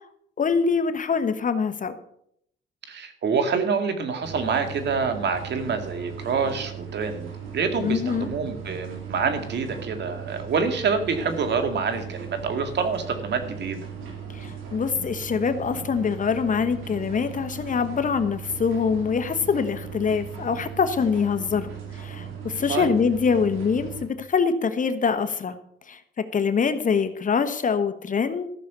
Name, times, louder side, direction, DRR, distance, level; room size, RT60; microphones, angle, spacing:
voice 1, 0.4-2.0 7.8-8.3 14.3-25.6 25.9-28.5, left 5 dB, 40° left, 10 dB, 1.2 m, -24 dB
voice 2, 2.9-7.3 7.5-13.8 22.7-22.9, right 5 dB, 60° right, 6 dB, 2.1 m, -26 dB
sound 1, 4.2-24.1, right 7 dB, 90° right, 2.9 m, -38 dB
14.0 x 6.6 x 6.8 m, 0.71 s
cardioid pair, 90°, 20 cm